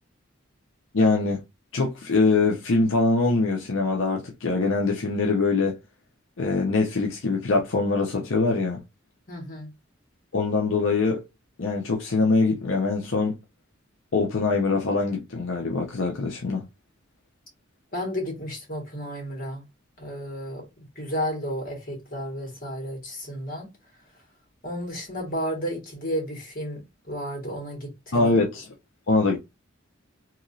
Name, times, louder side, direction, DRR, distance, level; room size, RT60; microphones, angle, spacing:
voice 1, 0.9-1.4 1.7-5.8 6.4-8.8 10.3-11.2 11.6-13.4 14.1-16.6 28.1-28.7 29.1-29.4, left 3 dB, 85° left, 0.7 m, -23 dB
voice 2, 9.3-9.7 17.9-19.6 20.0-23.7 24.6-28.3, equal, 45° left, 1.7 m, -32 dB
3.0 x 2.8 x 2.6 m
head